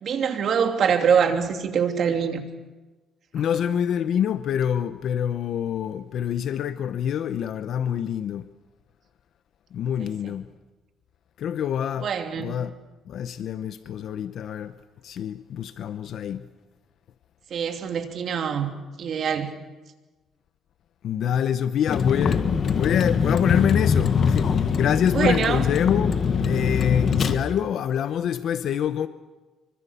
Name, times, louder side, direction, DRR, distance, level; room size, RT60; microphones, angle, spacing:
voice 1, 0.0-2.4 10.0-10.3 12.0-12.6 17.5-18.7 19.0-19.5 25.1-25.6, right 7 dB, 50° right, 2.9 m, -24 dB
voice 2, 3.3-8.5 9.7-10.5 11.4-12.1 12.4-12.8 13.1-14.7 15.0-16.5 21.0-26.2 26.4-29.1, left 9 dB, 60° left, 0.8 m, -26 dB
Vehicle, 21.9-27.3, left 6 dB, 45° left, 1.5 m, -23 dB
26.0 x 24.0 x 6.9 m
cardioid pair, 135°, 0 cm